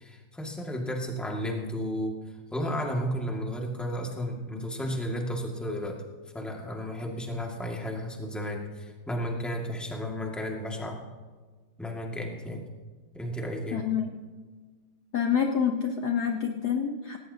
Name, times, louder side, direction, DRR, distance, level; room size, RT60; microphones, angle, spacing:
voice 1, 0.0-2.2 2.5-6.0 6.3-11.0 11.8-12.7 13.1-13.8, equal, ahead, 0 dB, 1.7 m, -33 dB
voice 2, 13.7-14.1 15.1-17.2, left 7 dB, 60° left, 4 dB, 1.2 m, -27 dB
17.5 x 17.5 x 2.8 m, 1.4 s
omnidirectional pair, 2.4 m